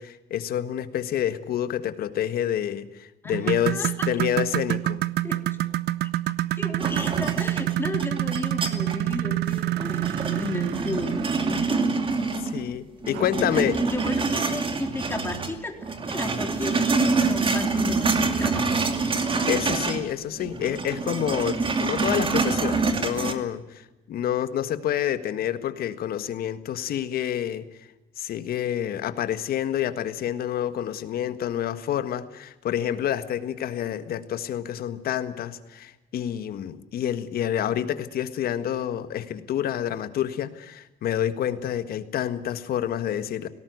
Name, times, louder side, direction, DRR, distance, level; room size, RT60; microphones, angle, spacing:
voice 1, 0.0-5.0 12.4-13.8 19.1-27.7 28.2-43.5, left 10 dB, 65° left, 11 dB, 1.7 m, -28 dB
voice 2, 3.2-4.1 5.2-5.7 6.0-6.1 6.5-11.9 13.0-15.8 16.0-18.7, left 2 dB, 15° left, 4 dB, 3.8 m, -34 dB
sound 1, 3.3-11.7 13.1-13.3 13.8-13.9 14.5-14.6, right 15 dB, 75° right, 0.7 m, -27 dB
sound 2, 6.8-9.1 9.5-12.7 13.0-15.5 15.8-20.1 20.4-23.3, right 4 dB, 30° right, 2.5 m, -26 dB
18.5 x 18.0 x 9.5 m, 0.99 s
cardioid pair, 110°, 17 cm